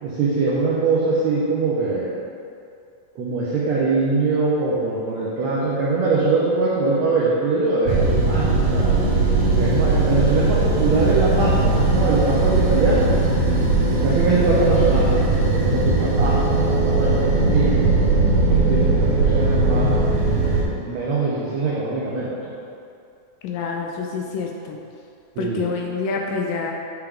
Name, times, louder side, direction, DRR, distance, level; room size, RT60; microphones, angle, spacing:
voice 1, 0.0-2.1 3.1-8.9 9.5-13.1 13.9-20.0 20.8-22.3 25.4-25.6, right 3 dB, 85° right, -7 dB, 1.5 m, -22 dB
sound 1, 7.8-20.6, right 3 dB, 65° right, 2.3 m, -19 dB
voice 2, 23.4-24.8 25.4-26.7, left 5 dB, 80° left, 1 dB, 2.1 m, -27 dB
8.4 x 4.6 x 3.7 m, 2.5 s
omnidirectional pair, 4.2 m